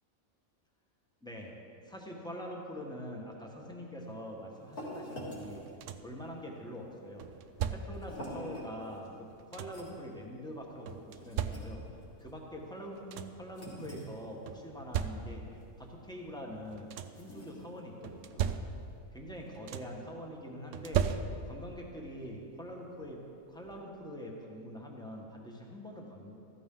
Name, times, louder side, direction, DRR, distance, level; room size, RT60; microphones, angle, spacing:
voice 1, 1.2-1.5 1.8-5.7 6.0-7.3 7.7-11.8 12.2-18.6 19.1-21.1 21.4-23.2 23.5-26.3, equal, 5° left, -1 dB, 1.5 m, -44 dB
sound 1, 4.0-19.0, equal, 40° left, 3.2 m, -49 dB
sound 2, 5.4-6.2 7.2-8.2 9.1-10.0 10.9-12.1 12.6-12.7 12.9-13.5 14.5-15.6 16.6-17.3 18.0-19.1 19.3-20.1 20.7-21.7 23.0-23.1 23.6-23.8, right 8 dB, 70° right, 0.9 m, -37 dB
15.0 x 14.0 x 3.9 m, 2.7 s
omnidirectional pair, 1.4 m